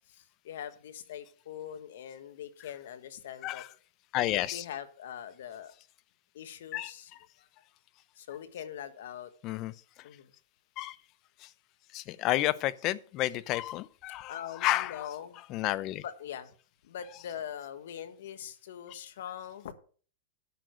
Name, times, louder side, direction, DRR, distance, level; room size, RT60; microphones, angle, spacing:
voice 1, 0.1-3.6 4.5-5.7 6.3-7.1 7.4-7.5 8.2-9.3 10.0-10.3 14.3-15.4 16.0-16.5 16.8-19.7, left 9 dB, 75° left, 1.4 m, -42 dB
voice 2, 4.1-4.6 6.7-6.9 9.4-9.7 10.8-11.0 11.9-15.0 15.5-16.0, left 15 dB, 35° left, 0.6 m, -31 dB
10.0 x 6.7 x 6.3 m
supercardioid pair, 145°, 0 cm